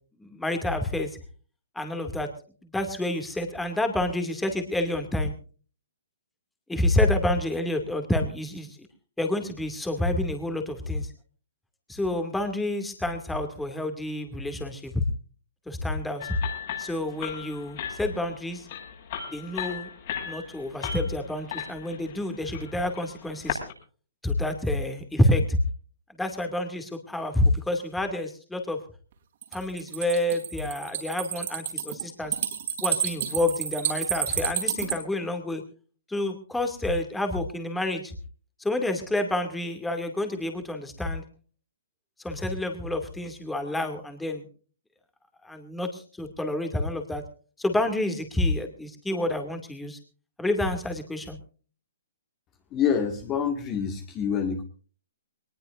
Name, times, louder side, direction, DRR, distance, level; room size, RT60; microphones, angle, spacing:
voice 1, 0.2-1.1 1.8-2.3 2.7-5.3 6.7-8.7 9.2-11.1 11.9-15.0 15.7-16.4 16.8-18.7 19.3-19.9 20.2-23.6 24.2-25.6 26.2-28.8 29.5-32.3 32.8-35.6 36.1-38.1 38.6-41.2 42.2-44.4 45.4-47.2 47.6-50.0 50.4-51.4, left 1 dB, 5° left, 5 dB, 2.4 m, -28 dB
sound 1, 16.2-23.7, left 8 dB, 50° left, 7.1 m, -37 dB
sound 2, 29.4-35.0, right 9 dB, 55° right, 3.8 m, -30 dB
voice 2, 52.7-54.6, left 7 dB, 25° left, 5 dB, 1.9 m, -26 dB
22.0 x 20.0 x 2.6 m, 0.40 s
hypercardioid pair, 140°, 0 cm